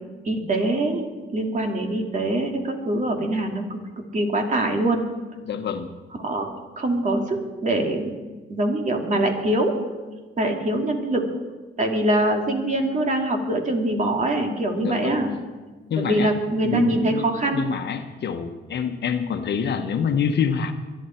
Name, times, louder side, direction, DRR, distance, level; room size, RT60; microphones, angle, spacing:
voice 1, 0.2-1.1 1.3-3.8 4.1-5.0 6.2-6.5 6.8-8.2 8.5-9.7 10.4-11.3 11.8-15.3 16.0-17.6, right 1 dB, 40° right, 2 dB, 2.7 m, -23 dB
voice 2, 5.4-5.9 14.8-15.2 15.9-16.3 16.6-17.3 17.5-20.7, left 7 dB, 60° left, 7 dB, 1.2 m, -26 dB
22.5 x 11.5 x 4.6 m, 1.3 s
cardioid pair, 90°, 20 cm